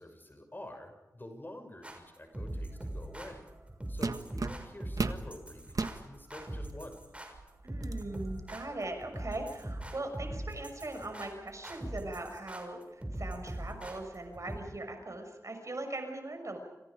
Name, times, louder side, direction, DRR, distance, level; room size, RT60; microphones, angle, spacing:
voice 1, 0.0-3.5 3.9-7.0, left 1 dB, 35° left, 5 dB, 6.5 m, -48 dB
sound 1, 1.8-14.6, right 1 dB, 20° right, 6.2 m, -41 dB
sound 2, 3.3-3.5 4.0-5.2 5.7-6.0 6.7-6.8 7.3-8.0, right 3 dB, 75° right, 1.5 m, -34 dB
voice 2, 7.6-16.6, right 2 dB, 55° right, 5 dB, 6.4 m, -40 dB
29.5 x 27.5 x 5.1 m, 1.1 s
wide cardioid pair, 60°, 6 cm